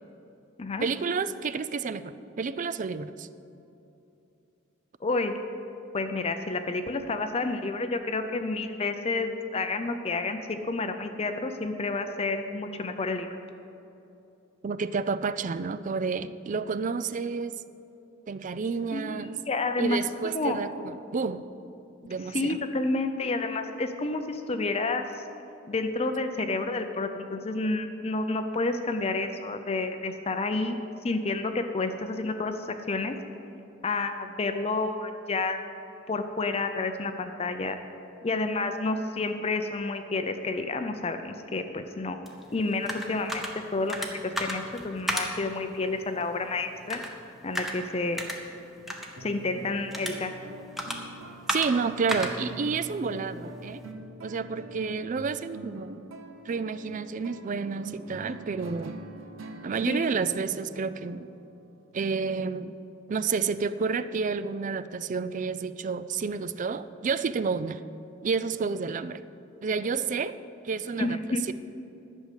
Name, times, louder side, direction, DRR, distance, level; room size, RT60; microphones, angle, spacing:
voice 1, 0.8-3.3 14.6-17.6 18.3-19.4 19.8-21.5 22.1-22.6 51.5-53.8 54.2-56.0 56.5-59.0 59.6-61.3 61.9-62.8 63.1-67.8 68.2-69.2 69.6-70.4 70.6-71.2 71.5-71.6, right 5 dB, 40° right, 14 dB, 0.4 m, -30 dB
voice 2, 5.0-5.3 5.9-13.3 18.9-20.0 20.2-20.6 22.3-25.2 25.7-33.2 33.8-35.7 36.1-37.8 38.2-42.2 42.5-44.1 44.4-47.0 47.4-48.2 49.2-50.3 59.9-60.1 71.0-71.4, left 3 dB, 30° left, 7 dB, 0.5 m, -30 dB
sound 1, 42.3-53.9, equal, ahead, 1.0 m, -37 dB
sound 2, 49.2-61.9, right 2 dB, 80° right, 0.8 m, -45 dB
11.5 x 6.4 x 8.2 m, 2.9 s
head